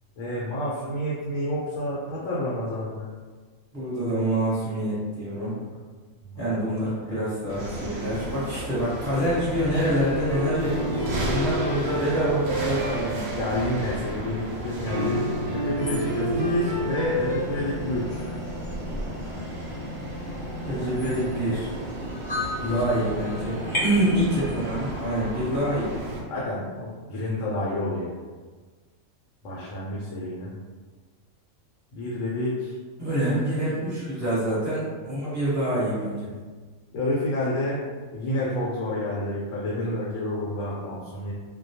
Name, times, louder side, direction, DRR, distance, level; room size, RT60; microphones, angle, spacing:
voice 1, 0.2-3.1 6.2-6.4 7.0-7.2 10.9-11.5 13.4-15.2 15.5-18.3 22.5-22.8 26.3-28.1 29.4-30.5 31.9-32.8 36.9-37.8 38.1-41.3, left 1 dB, 75° left, -6 dB, 0.9 m, -29 dB
voice 2, 3.7-5.5 6.4-13.3 15.9-16.4 20.7-21.7 22.7-25.9 33.0-36.3, right 1 dB, 15° right, -11 dB, 1.0 m, -26 dB
sound 1, 7.5-26.2, right 1 dB, 60° right, 0.7 m, -34 dB
sound 2, 10.3-14.0 14.9-17.4, equal, 80° right, 1.0 m, -30 dB
sound 3, 15.8-24.9, left 2 dB, 30° left, 0.6 m, -36 dB
2.2 x 2.1 x 2.7 m, 1.4 s
omnidirectional pair, 1.4 m